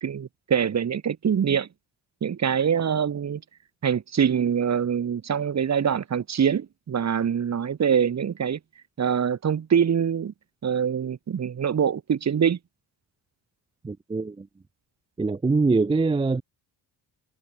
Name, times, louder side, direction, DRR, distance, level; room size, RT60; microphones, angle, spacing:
voice 1, 0.0-1.7 2.2-3.4 3.8-8.6 9.0-10.3 10.6-12.6, right 7 dB, 35° right, 0.9 m, -24 dB
voice 2, 13.8-14.5 15.2-16.4, right 3 dB, 10° right, 0.4 m, -23 dB
cardioid pair, 75°, 47 cm